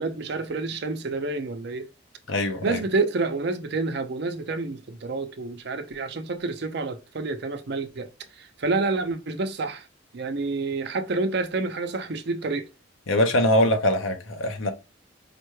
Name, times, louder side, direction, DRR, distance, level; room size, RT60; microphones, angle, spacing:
voice 1, 0.0-1.9 2.6-8.1 8.4-9.9 10.1-12.7, right 3 dB, 55° right, 0.6 m, -28 dB
voice 2, 2.3-2.8 13.1-14.7, left 1 dB, 80° left, 0.8 m, -22 dB
5.0 x 2.2 x 3.1 m
head